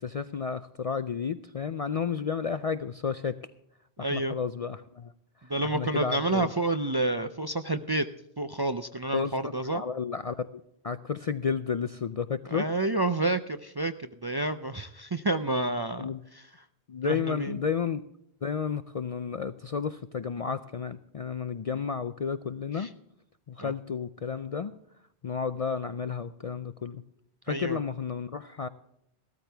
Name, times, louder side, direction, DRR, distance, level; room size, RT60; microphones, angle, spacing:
voice 1, 0.0-3.4 4.0-5.1 5.4-6.5 9.1-12.7 16.0-16.2 16.9-18.0 18.4-22.9 23.5-24.8 25.2-27.0 27.4-28.7, left 6 dB, 50° left, 11 dB, 0.4 m, -32 dB
voice 2, 4.0-4.4 5.5-8.1 8.4-9.8 12.5-16.1 17.0-17.5 22.8-22.9 23.6-23.7 27.5-27.8, right 2 dB, 30° right, 8 dB, 0.4 m, -29 dB
15.0 x 13.5 x 3.4 m, 0.78 s
omnidirectional pair, 1.1 m